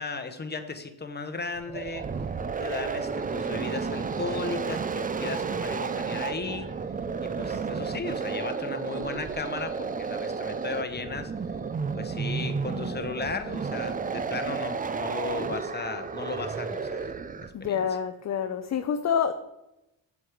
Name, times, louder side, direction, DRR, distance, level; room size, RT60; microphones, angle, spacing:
voice 1, 0.0-2.1 2.6-6.7 7.2-11.3 11.9-17.1 17.6-17.8, left 4 dB, 20° left, 8 dB, 1.0 m, -35 dB
sound 1, 1.6-17.7, right 5 dB, 20° right, 0.4 m, -32 dB
voice 2, 17.5-19.3, left 7 dB, 35° left, 7 dB, 0.6 m, -27 dB
7.8 x 7.3 x 4.9 m, 0.91 s
cardioid pair, 95°, 46 cm